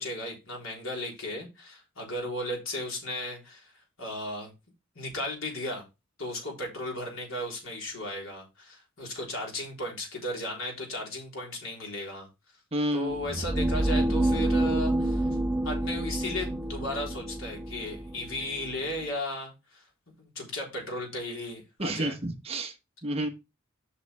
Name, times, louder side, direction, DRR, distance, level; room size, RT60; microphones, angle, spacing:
voice 1, 0.0-3.7 4.0-4.5 5.0-5.8 6.2-12.3 12.9-15.3 15.6-19.8 20.2-22.1, left 1 dB, 85° left, -1 dB, 3.8 m, -35 dB
voice 2, 12.7-13.2 21.8-22.7 23.0-23.3, right 1 dB, 30° right, 5 dB, 1.1 m, -30 dB
sound 1, 13.1-19.0, right 1 dB, 10° right, 0.5 m, -28 dB
8.0 x 6.0 x 3.4 m, 0.25 s
head